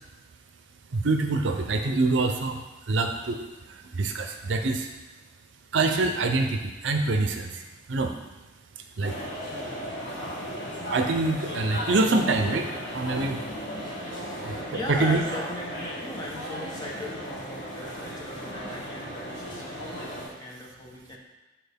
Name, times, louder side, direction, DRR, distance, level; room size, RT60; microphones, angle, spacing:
voice 1, 0.9-2.6 2.9-4.9 5.7-7.6 7.9-8.1 9.0-9.2 10.9-12.7 12.9-13.4 14.4-14.5 14.9-15.2, right 3 dB, 70° right, 5 dB, 0.6 m, -25 dB
sound 1, 9.0-20.3, equal, 70° left, 2.1 m, -36 dB
voice 2, 14.2-21.2, left 1 dB, 20° left, -2 dB, 0.9 m, -38 dB
6.7 x 4.4 x 3.5 m, 1.1 s
head